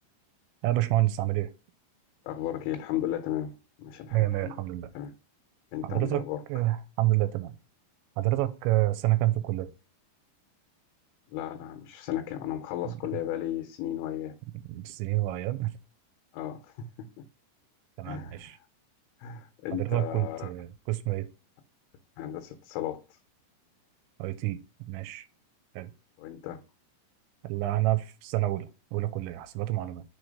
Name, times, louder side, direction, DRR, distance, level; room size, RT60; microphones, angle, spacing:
voice 1, 0.6-1.5 4.1-4.9 5.8-7.5 8.2-9.7 12.8-12.9 14.7-15.7 18.0-18.6 19.7-21.3 24.2-24.6 24.9-25.3 25.8-25.9 27.4-30.0, right 16 dB, 85° right, 2.8 m, -28 dB
voice 2, 2.3-3.5 3.8-4.5 4.9-5.1 5.7-6.4 11.3-14.4 16.3-16.9 18.1-18.4 19.2-20.5 22.2-23.0 26.2-26.6, left 11 dB, 85° left, 3.1 m, -34 dB
6.6 x 3.2 x 5.0 m
omnidirectional pair, 5.3 m